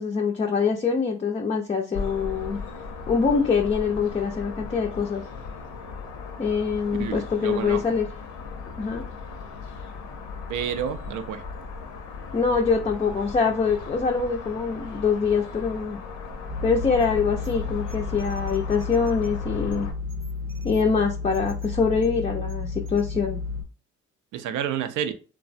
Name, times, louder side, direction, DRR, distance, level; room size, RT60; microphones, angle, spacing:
voice 1, 0.0-2.6 3.1-5.2 6.4-8.1 8.8-9.1 12.3-16.0 16.6-19.9 20.6-23.4, left 5 dB, 20° left, 0.3 m, -24 dB
sound 1, 1.9-19.9, left 4 dB, 85° left, 0.6 m, -37 dB
voice 2, 7.0-7.8 10.5-11.4 24.3-25.1, right 9 dB, 85° right, 0.5 m, -29 dB
sound 2, 16.5-23.6, left 4 dB, 30° right, 0.7 m, -32 dB
3.2 x 2.0 x 2.5 m
cardioid pair, 90°, 30 cm